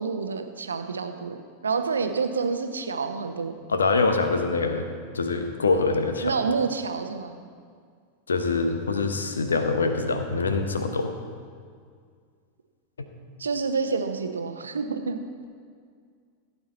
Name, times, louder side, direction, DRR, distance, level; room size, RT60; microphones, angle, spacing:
voice 1, 0.0-3.5 6.2-7.4 13.4-15.2, right 5 dB, 70° right, 7 dB, 0.8 m, -28 dB
voice 2, 3.7-4.9 5.1-6.4 8.3-11.1, left 3 dB, 70° left, 7 dB, 1.0 m, -24 dB
16.0 x 8.4 x 4.1 m, 2.1 s
figure-of-eight pair, 90°, 0 cm